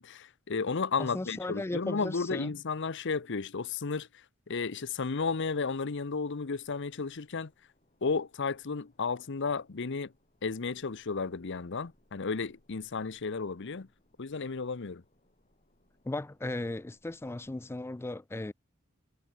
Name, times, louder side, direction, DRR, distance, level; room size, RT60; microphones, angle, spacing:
voice 1, 0.0-4.1 4.5-7.5 8.0-10.1 10.4-13.9 14.2-15.0, left 4 dB, 60° left, 0.8 m, -33 dB
voice 2, 1.0-2.5 16.0-18.5, left 2 dB, 10° left, 0.4 m, -36 dB
sound 1, 4.7-17.8, left 1 dB, 35° left, 6.9 m, -70 dB
head